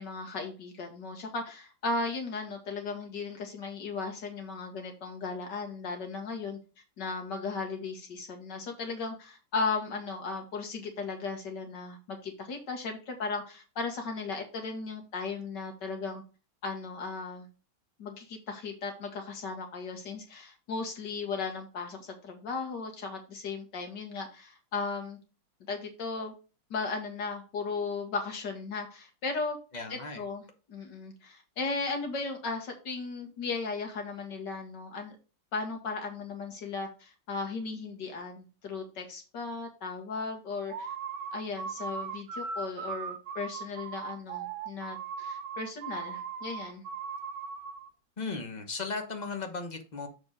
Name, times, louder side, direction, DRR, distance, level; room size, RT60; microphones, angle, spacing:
voice 1, 0.0-6.6 7.0-16.2 16.6-17.5 18.0-25.2 25.7-26.3 26.7-29.6 29.9-35.1 35.5-40.9 41.3-46.8, left 4 dB, 65° left, 3 dB, 2.1 m, -36 dB
voice 2, 29.7-30.2 48.2-50.1, left 4 dB, 30° left, 4 dB, 0.9 m, -36 dB
sound 1, 40.7-47.9, right 6 dB, 70° right, 1.4 m, -38 dB
7.0 x 4.3 x 4.7 m, 0.33 s
omnidirectional pair, 2.1 m